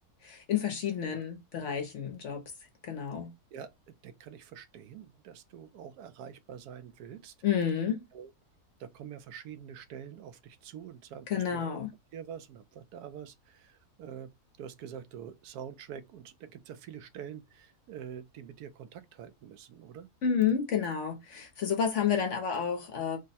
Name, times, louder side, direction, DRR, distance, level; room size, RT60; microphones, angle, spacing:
voice 1, 0.2-2.4 2.8-3.3 7.4-8.0 11.3-11.9 20.2-23.2, left 8 dB, 60° left, 0.9 m, -30 dB
voice 2, 4.0-7.3 8.1-8.3 8.8-11.7 12.1-14.3 14.6-20.1, right 8 dB, 80° right, 1.1 m, -46 dB
3.4 x 2.0 x 4.0 m
omnidirectional pair, 1.6 m